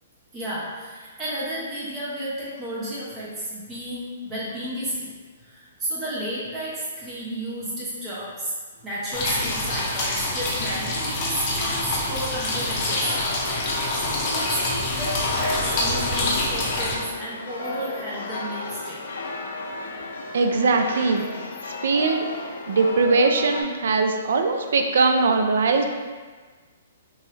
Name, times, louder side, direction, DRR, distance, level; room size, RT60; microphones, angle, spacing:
voice 1, 0.3-5.1 5.4-8.5 8.8-13.2 13.9-19.0, equal, 20° right, -8 dB, 0.8 m, -32 dB
sound 1, 9.1-17.0, left 1 dB, 30° left, 0.6 m, -26 dB
sound 2, 13.0-23.6, left 2 dB, 70° left, 0.4 m, -33 dB
voice 2, 20.3-21.2 21.8-22.3 22.7-25.9, right 3 dB, 70° right, 5 dB, 0.4 m, -20 dB
3.1 x 2.6 x 2.7 m, 1.4 s
hypercardioid pair, 140°, 0 cm